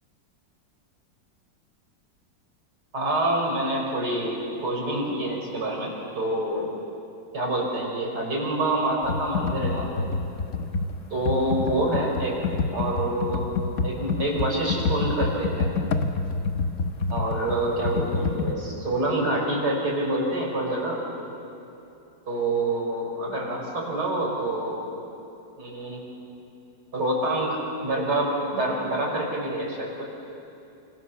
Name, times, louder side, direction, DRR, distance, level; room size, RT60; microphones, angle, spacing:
voice 1, 2.9-6.7 7.3-10.1 11.1-12.4 12.7-13.5 13.8-15.7 17.1-21.0 22.3-24.8 25.6-26.0 26.9-30.0, right 1 dB, 60° right, -2 dB, 5.9 m, -27 dB
Computer keyboard, 9.0-18.5, left 4 dB, 45° left, 1.3 m, -27 dB
28.0 x 25.5 x 7.1 m, 2.8 s
omnidirectional pair, 2.0 m